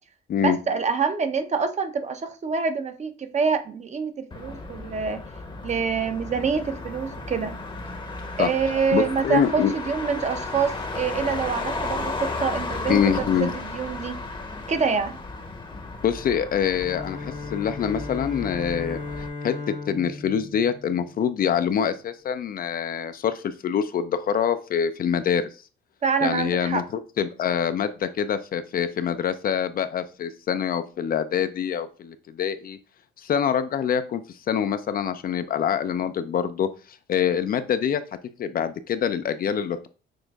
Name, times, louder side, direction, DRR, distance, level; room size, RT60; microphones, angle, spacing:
voice 1, 0.4-5.2 5.6-7.6 8.4-14.2 14.7-15.2 26.0-26.8, right 5 dB, 35° right, 0.6 m, -26 dB
Motor vehicle (road), 4.3-19.3, left 3 dB, 25° left, 0.7 m, -34 dB
voice 2, 8.9-9.7 12.9-13.5 16.0-19.5 19.9-25.5 26.2-32.8 33.2-34.2 34.5-36.7 37.1-38.0 38.4-39.9, left 8 dB, 50° left, 0.4 m, -25 dB
Bowed string instrument, 16.7-21.6, left 3 dB, 75° left, 1.0 m, -37 dB
6.1 x 2.5 x 2.3 m
cardioid pair, 90°, 20 cm